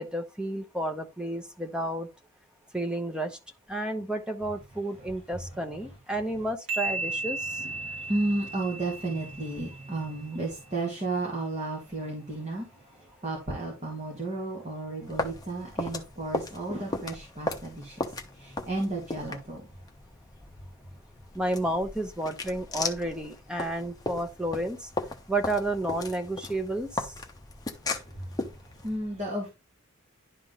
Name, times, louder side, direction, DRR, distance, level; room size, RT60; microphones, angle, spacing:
voice 1, 0.0-2.1 2.7-3.4 3.7-7.6 21.3-24.9 25.3-27.1, right 1 dB, 5° right, 0.9 m, -31 dB
sound 1, 6.7-10.2, right 3 dB, 75° right, 1.6 m, -35 dB
voice 2, 7.4-19.7 28.0-29.5, right 2 dB, 30° right, 2.0 m, -33 dB
sound 2, 15.0-29.0, left 2 dB, 20° left, 0.9 m, -37 dB
11.0 x 3.8 x 3.7 m
head